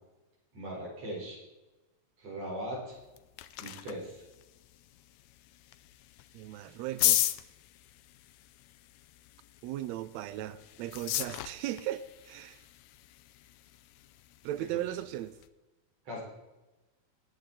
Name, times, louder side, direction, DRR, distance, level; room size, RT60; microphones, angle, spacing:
voice 1, 0.5-1.4 2.2-3.0 3.6-4.2 14.7-14.8 16.1-16.2, equal, 55° right, -4 dB, 5.8 m, -39 dB
Carbonated Soda Bottle, 2.9-15.5, left 14 dB, 75° left, 1.8 m, -37 dB
voice 2, 6.3-7.3 9.6-12.6 14.4-15.4, right 13 dB, 80° right, 14 dB, 1.6 m, -37 dB
21.0 x 8.2 x 4.2 m, 1.1 s
omnidirectional pair, 3.5 m